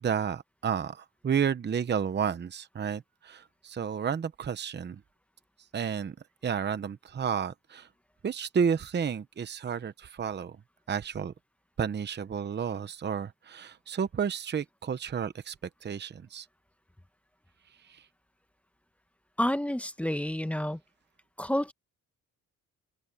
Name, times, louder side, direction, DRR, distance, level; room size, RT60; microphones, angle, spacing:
voice 1, 0.0-5.0 5.7-6.2 6.4-7.9 8.2-10.6 10.9-11.3 11.8-15.5 15.8-16.5 17.9-18.0, right 7 dB, 35° right, 0.9 m, -31 dB
voice 2, 19.4-20.8 21.4-21.7, left 1 dB, 5° left, 1.0 m, -29 dB
open air
cardioid pair, 110°, 32 cm